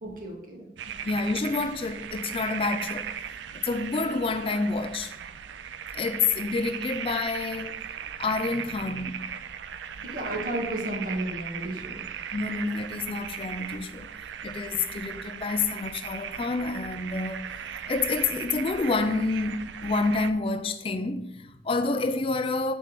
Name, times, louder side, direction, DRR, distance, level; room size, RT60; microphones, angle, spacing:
voice 1, 0.0-0.7 10.1-12.0, right 1 dB, 50° right, 1.7 m, -33 dB
sound 1, 0.8-20.3, right 8 dB, 75° right, 0.4 m, -38 dB
voice 2, 1.0-3.1 3.5-5.1 5.9-7.8 8.2-9.3 12.3-14.1 14.4-17.4 17.9-22.7, left 3 dB, 30° left, 0.4 m, -28 dB
6.1 x 4.4 x 6.4 m
head